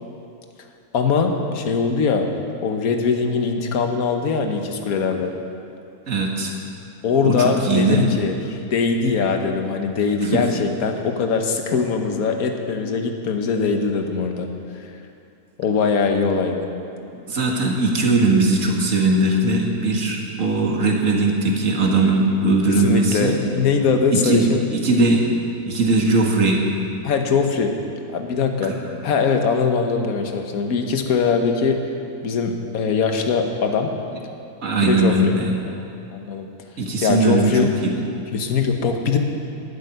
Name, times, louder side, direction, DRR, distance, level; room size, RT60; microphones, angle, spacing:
voice 1, 0.9-2.3 2.6-5.3 7.0-14.5 15.6-16.7 22.7-24.7 27.0-27.7 28.1-28.7 29.0-31.9 32.2-33.9 34.8-35.3 36.1-36.5 37.0-37.7 38.3-39.2, left 5 dB, 65° left, 4 dB, 1.5 m, -21 dB
voice 2, 6.1-6.5 7.2-8.1 10.2-10.4 17.3-23.4 24.1-25.2 25.7-26.6 28.6-28.8 34.6-35.5 36.8-37.9, right 2 dB, 55° right, 0 dB, 2.0 m, -19 dB
12.5 x 7.8 x 9.5 m, 2.7 s
omnidirectional pair, 1.7 m